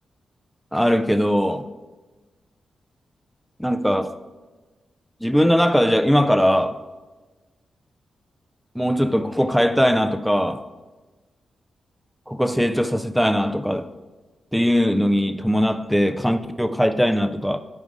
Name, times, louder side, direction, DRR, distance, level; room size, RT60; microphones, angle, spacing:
voice 1, 0.7-1.6 3.6-4.2 5.2-6.8 8.7-10.6 12.3-13.9 14.5-17.6, equal, ahead, 0.3 m, -20 dB
13.0 x 4.8 x 2.6 m
wide cardioid pair, 130°, 0 cm